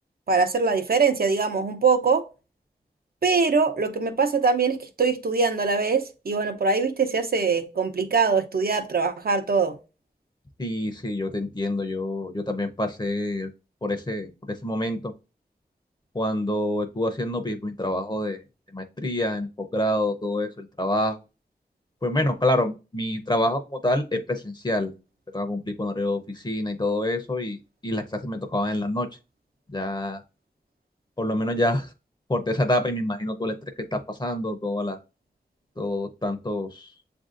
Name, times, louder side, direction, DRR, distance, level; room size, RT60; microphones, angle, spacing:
voice 1, 0.3-2.2 3.2-9.8, right 4 dB, 70° right, 0.7 m, -23 dB
voice 2, 10.6-13.5 13.8-15.1 16.1-18.4 18.7-21.2 22.0-24.9 25.3-29.1 29.7-30.2 31.2-31.9 32.3-33.5 33.9-35.0 35.8-36.9, left 1 dB, 25° left, 0.6 m, -27 dB
7.1 x 2.6 x 2.5 m
cardioid pair, 45°, 16 cm